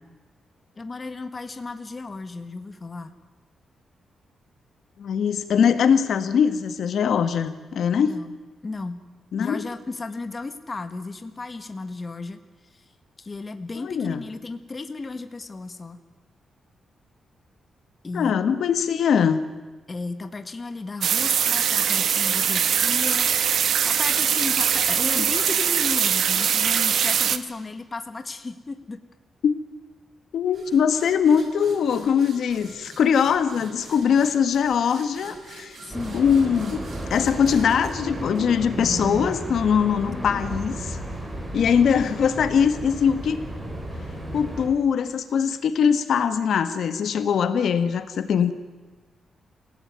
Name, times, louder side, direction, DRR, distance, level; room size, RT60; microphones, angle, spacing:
voice 1, 0.8-3.1 8.0-8.4 8.6-9.0 9.4-12.4 12.7-12.8 13.2-16.0 18.0-18.4 19.9-23.3 23.8-29.0 35.8-36.2 40.0-40.6, left 3 dB, 25° left, 9 dB, 1.6 m, -34 dB
voice 2, 5.0-8.1 9.3-9.6 13.8-14.2 18.1-19.4 25.2-25.3 29.4-29.6 30.3-35.8 36.1-41.0 41.5-43.4 44.3-48.5, left 7 dB, 65° left, 11 dB, 1.5 m, -22 dB
sound 1, 21.0-27.4, right 8 dB, 60° right, 1.3 m, -22 dB
sound 2, 30.5-39.0, right 3 dB, 45° right, 5.3 m, -46 dB
sound 3, 35.9-44.7, right 1 dB, 15° right, 5.6 m, -33 dB
27.5 x 17.0 x 9.5 m, 1.3 s
wide cardioid pair, 145°, 0 cm